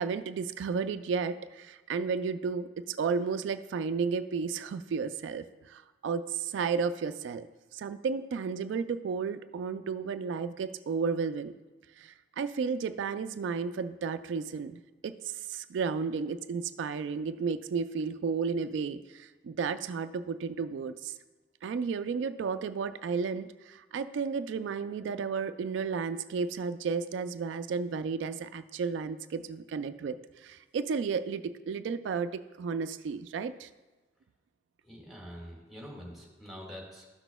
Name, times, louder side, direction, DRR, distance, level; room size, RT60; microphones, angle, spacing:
voice 1, 0.0-7.5 7.7-11.5 12.0-21.1 21.6-33.7, right 5 dB, 85° right, 10 dB, 0.3 m, -33 dB
voice 2, 34.9-37.1, equal, ahead, -3 dB, 1.7 m, -45 dB
13.0 x 6.0 x 2.2 m, 1.2 s
head